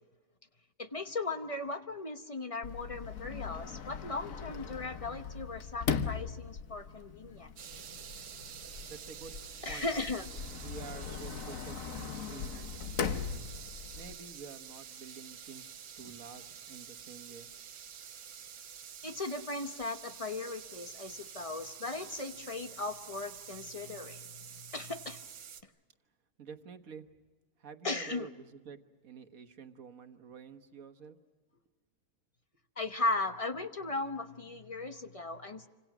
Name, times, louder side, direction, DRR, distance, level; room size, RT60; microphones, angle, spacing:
voice 1, 0.8-7.5 9.6-10.3 19.0-25.2 27.8-28.3 32.8-35.7, left 2 dB, 25° left, 8 dB, 0.8 m, -37 dB
Sliding door, 2.6-14.1, left 6 dB, 60° left, 1.4 m, -39 dB
sound 1, 7.6-25.6, right 8 dB, 90° right, 1.6 m, -48 dB
voice 2, 8.9-9.3 9.7-10.0 10.5-13.5 13.9-17.5 26.4-27.1 27.6-31.2 31.5-31.6, right 6 dB, 60° right, 8 dB, 1.7 m, -49 dB
27.5 x 26.0 x 6.1 m, 1.3 s
omnidirectional pair, 1.7 m